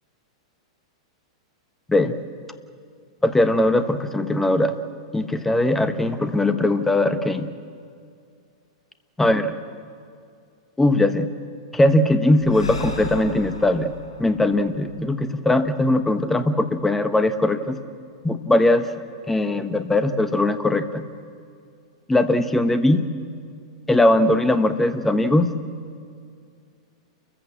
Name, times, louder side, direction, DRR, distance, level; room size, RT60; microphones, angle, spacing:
voice 1, 3.2-4.8 5.1-7.5 9.2-9.5 10.8-11.3 11.7-13.9 14.2-17.8 18.2-18.9 19.3-21.1 22.1-23.1 23.9-25.5, left 1 dB, 10° left, 9 dB, 1.3 m, -20 dB
Breathing, 12.4-15.9, left 5 dB, 85° left, 5.6 m, -36 dB
29.5 x 15.0 x 7.5 m, 2.3 s
hypercardioid pair, 105°, 3 cm